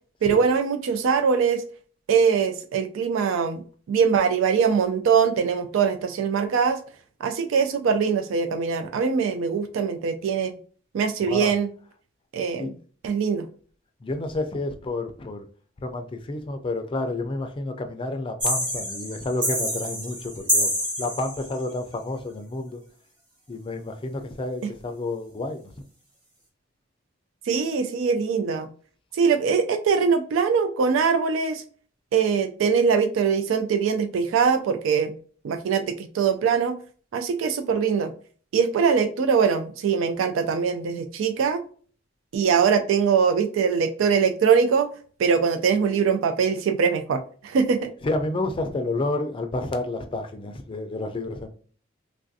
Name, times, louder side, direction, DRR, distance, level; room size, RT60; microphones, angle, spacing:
voice 1, 0.2-1.6 2.1-6.8 7.2-10.6 10.9-11.7 12.3-12.7 13.0-13.5 24.6-24.7 27.5-28.7 29.1-31.6 32.1-35.2 35.4-36.8 37.1-38.1 38.5-41.6 42.3-44.9 45.2-47.9, right 6 dB, 85° right, 0.3 m, -22 dB
voice 2, 14.0-15.5 15.8-20.7 21.0-22.8 23.5-25.7 48.0-51.5, left 2 dB, 25° left, 0.4 m, -30 dB
sound 1, 18.4-21.6, equal, 25° right, 1.1 m, -27 dB
3.2 x 2.4 x 2.6 m
head